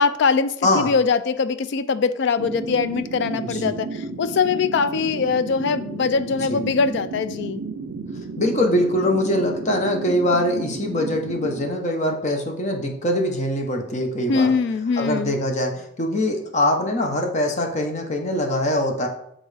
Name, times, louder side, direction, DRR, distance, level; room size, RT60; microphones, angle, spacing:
voice 1, 0.0-7.6 14.3-15.3, left 5 dB, 60° left, 13 dB, 0.3 m, -22 dB
voice 2, 0.6-0.9 3.4-3.7 6.5-6.6 8.4-14.5 15.0-19.1, left 1 dB, 35° left, 2 dB, 0.8 m, -23 dB
sound 1, 2.4-11.7, right 4 dB, 80° right, 0.5 m, -33 dB
8.5 x 3.7 x 3.3 m, 0.79 s
head